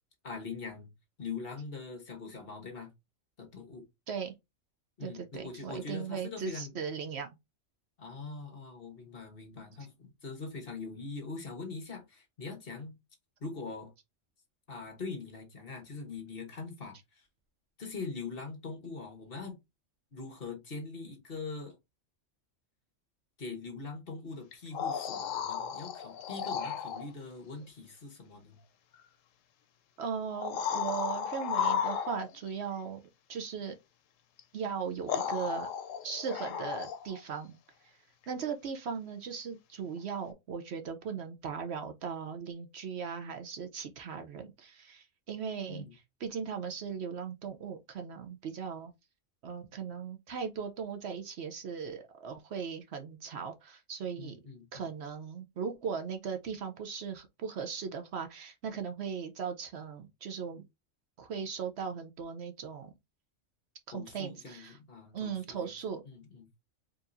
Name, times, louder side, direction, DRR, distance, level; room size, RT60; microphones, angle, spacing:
voice 1, 0.2-0.9 1.2-2.9 3.4-3.8 5.0-6.7 8.0-12.9 13.4-13.9 14.7-17.3 17.8-19.6 20.1-21.7 23.4-28.6 45.7-45.9 54.2-54.9 63.9-65.7 66.0-66.5, left 4 dB, 50° left, 1.3 m, -42 dB
voice 2, 5.0-7.3 30.0-33.0 33.3-33.7 34.5-35.7 36.0-37.6 37.8-37.9 38.3-48.9 49.4-54.4 54.7-60.6 61.2-62.9 63.9-64.8 65.1-66.0, right 6 dB, 60° right, 0.8 m, -38 dB
sound 1, 24.5-27.1 28.9-29.0 30.3-32.5 34.4-34.5 35.1-37.2 40.3-40.4, left 7 dB, 85° left, 1.0 m, -34 dB
4.6 x 3.0 x 2.5 m
omnidirectional pair, 1.3 m